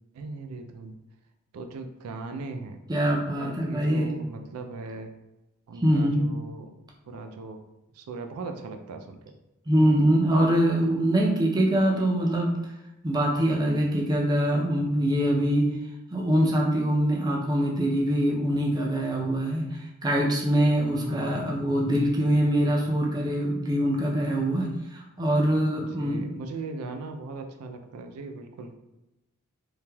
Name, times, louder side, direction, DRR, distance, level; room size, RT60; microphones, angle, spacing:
voice 1, 0.1-1.0 1.5-2.8 3.3-5.1 5.7-6.7 7.1-7.6 7.9-9.2 21.0-21.7 25.8-28.7, right 3 dB, 90° right, 5 dB, 0.4 m, -39 dB
voice 2, 2.9-4.1 5.8-6.2 9.7-12.6 13.0-15.7 16.1-26.3, equal, 20° right, -1 dB, 0.4 m, -24 dB
3.2 x 2.7 x 2.2 m, 0.95 s
head